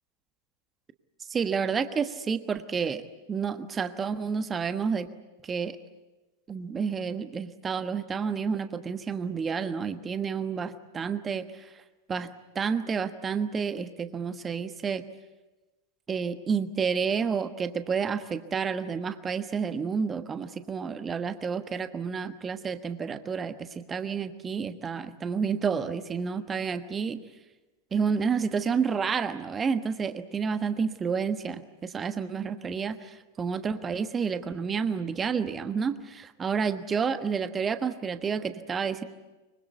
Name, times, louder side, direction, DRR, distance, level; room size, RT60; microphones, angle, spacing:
voice 1, 1.3-3.0 3.3-5.1 5.4-5.8 6.5-11.6 12.1-15.0 16.1-27.2 27.9-39.0, right 6 dB, 20° right, 10 dB, 1.3 m, -30 dB
25.0 x 24.0 x 8.2 m, 1.1 s
figure-of-eight pair, 90°, 0 cm